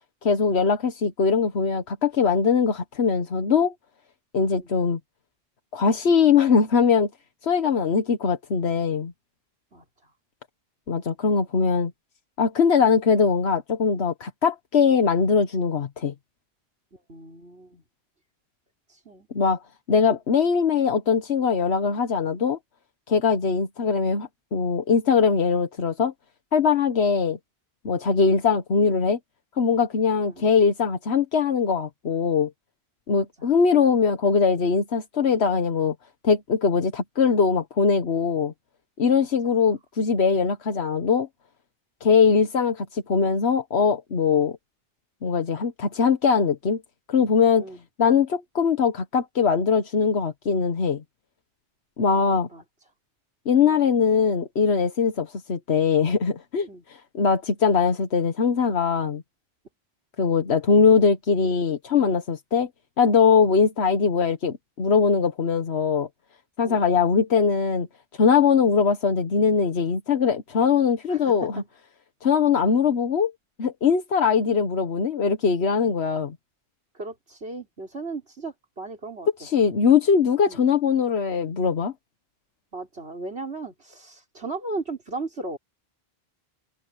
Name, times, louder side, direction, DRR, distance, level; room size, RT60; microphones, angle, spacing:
voice 1, 0.2-3.7 4.3-5.0 5.7-7.1 7.4-9.1 10.9-11.9 12.4-16.1 19.3-19.6 19.9-22.6 23.1-26.1 26.5-27.4 27.8-29.2 29.6-32.5 33.1-35.9 36.2-38.5 39.0-41.3 42.0-44.6 45.2-46.8 47.1-47.7 48.0-51.0 52.0-52.5 53.4-59.2 60.2-62.7 63.0-66.1 66.6-67.9 68.2-71.6 72.2-73.3 73.6-76.3 79.4-81.9, left 5 dB, 85° left, 1.5 m, -21 dB
voice 2, 9.7-10.1 16.9-17.8 18.9-19.3 28.1-28.2 30.2-30.5 33.1-33.5 39.1-39.6 47.6-47.8 52.1-52.6 53.6-53.8 56.7-56.8 63.5-63.6 66.6-66.8 71.1-71.5 76.9-79.3 80.5-80.6 82.7-85.6, right 3 dB, 80° right, 5.3 m, -37 dB
open air
omnidirectional pair, 1.1 m